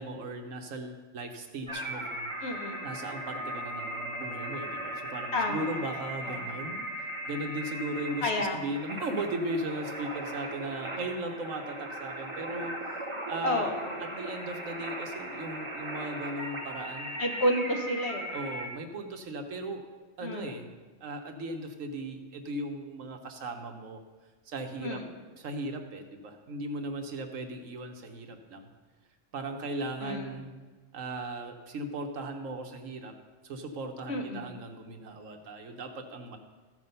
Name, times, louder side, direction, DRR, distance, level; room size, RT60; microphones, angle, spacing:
voice 1, 0.0-2.3 2.8-6.9 7.3-12.8 13.3-13.7 14.0-17.2 18.3-19.9 20.2-20.7 21.0-24.0 24.5-25.0 25.4-28.7 29.3-30.5 30.9-33.1 33.4-36.4, right 2 dB, 80° right, 5 dB, 1.4 m, -37 dB
sound 1, 1.7-18.7, right 1 dB, 25° right, 1.1 m, -38 dB
voice 2, 2.4-2.8 5.3-5.8 6.2-6.4 8.2-8.6 13.4-14.0 17.2-18.3 20.2-20.5 24.8-25.0 30.0-30.3 34.1-34.6, left 1 dB, 55° left, 2 dB, 1.5 m, -30 dB
14.5 x 6.1 x 5.4 m, 1.3 s
omnidirectional pair, 1.3 m